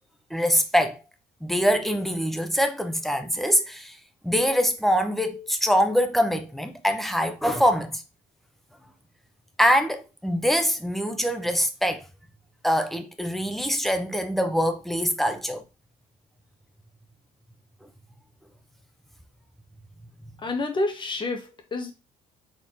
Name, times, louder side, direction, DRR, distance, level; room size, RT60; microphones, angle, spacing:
voice 1, 0.3-1.0 1.4-4.0 4.2-8.0 9.6-12.0 12.6-15.6, equal, ahead, 0.7 m, -24 dB
voice 2, 20.4-21.9, left 2 dB, 30° left, 1.2 m, -28 dB
4.4 x 3.4 x 3.1 m
cardioid pair, 110°, 17 cm